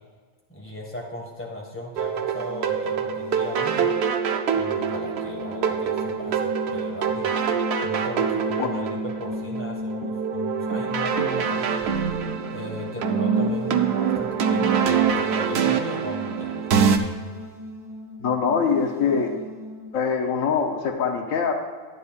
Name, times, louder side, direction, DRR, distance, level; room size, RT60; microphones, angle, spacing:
voice 1, 0.5-3.9 4.5-7.3 7.8-11.8 12.5-16.9, left 1 dB, 10° left, -1 dB, 1.5 m, -37 dB
sound 1, 2.0-17.0, right 7 dB, 60° right, 0.8 m, -25 dB
sound 2, 2.3-19.9, left 1 dB, 40° right, 2.1 m, -36 dB
voice 2, 18.2-19.4 19.9-21.5, left 6 dB, 85° left, 4 dB, 1.3 m, -23 dB
12.5 x 9.6 x 2.4 m, 1.5 s
omnidirectional pair, 1.4 m